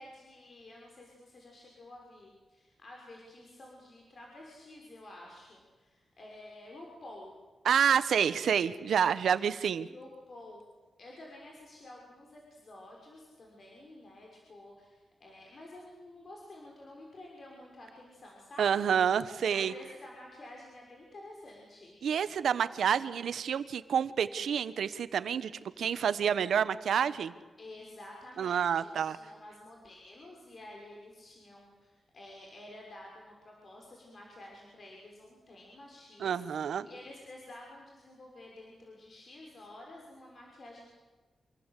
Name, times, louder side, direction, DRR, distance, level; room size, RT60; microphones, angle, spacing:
voice 1, 0.0-7.3 9.8-10.6 11.0-18.8 19.5-22.0 25.7-25.8 27.6-40.9, left 1 dB, 50° left, -1 dB, 6.2 m, -51 dB
voice 2, 7.6-9.9 18.6-19.7 22.0-25.5 25.8-27.3 28.4-29.2 36.2-36.9, right 8 dB, 85° right, 14 dB, 1.2 m, -28 dB
27.5 x 22.5 x 8.4 m, 1.2 s
cardioid pair, 85°, 0 cm